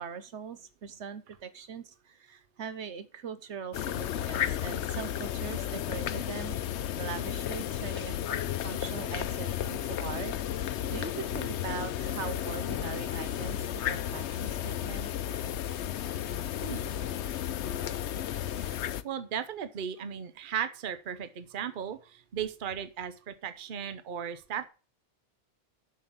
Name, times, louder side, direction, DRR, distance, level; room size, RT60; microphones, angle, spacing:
voice 1, 0.0-6.6 7.0-8.1 8.6-10.3 10.6-15.1, right 6 dB, 80° right, 12 dB, 1.3 m, -41 dB
sound 1, 3.7-19.0, left 11 dB, 75° left, 0.9 m, -33 dB
voice 2, 18.6-24.7, right 8 dB, 50° right, 12 dB, 0.9 m, -36 dB
7.7 x 6.4 x 7.1 m, 0.34 s
omnidirectional pair, 1.2 m